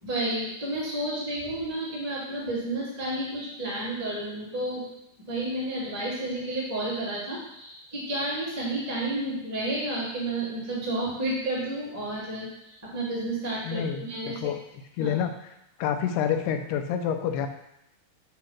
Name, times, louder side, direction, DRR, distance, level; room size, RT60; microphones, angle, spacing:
voice 1, 0.0-4.8 5.3-14.3 15.0-15.1, right 1 dB, 5° right, -7 dB, 1.2 m, -31 dB
voice 2, 13.6-14.6 15.0-15.5 15.8-17.5, left 8 dB, 90° left, 6 dB, 2.7 m, -28 dB
8.6 x 2.9 x 5.8 m, 0.83 s
omnidirectional pair, 4.5 m